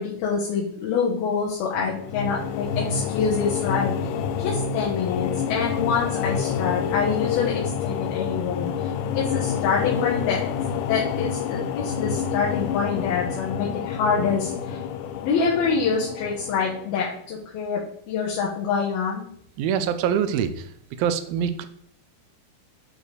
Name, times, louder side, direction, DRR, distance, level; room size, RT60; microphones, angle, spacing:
voice 1, 0.0-3.9 4.4-10.4 10.8-14.8 15.2-19.2, left 5 dB, 70° left, -4 dB, 3.1 m, -26 dB
sound 1, 1.8-17.1, left 7 dB, 85° left, 1.9 m, -28 dB
voice 2, 19.6-20.6 21.0-21.7, right 8 dB, 80° right, 10 dB, 2.3 m, -24 dB
8.8 x 4.8 x 4.9 m, 0.67 s
omnidirectional pair, 4.6 m